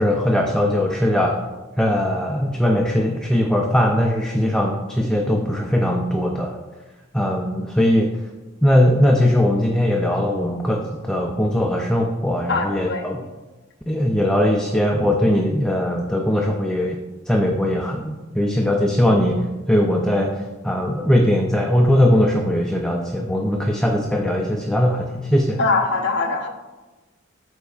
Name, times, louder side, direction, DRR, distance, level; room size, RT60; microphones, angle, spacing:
voice 1, 0.0-1.4 1.8-6.6 7.1-8.2 8.6-13.2 13.9-17.0 17.3-20.3 20.6-25.6, left 1 dB, 5° left, 1 dB, 0.4 m, -20 dB
voice 2, 12.5-13.1 25.6-26.5, left 3 dB, 60° left, 2 dB, 0.8 m, -22 dB
13.0 x 4.5 x 2.4 m, 1.2 s
head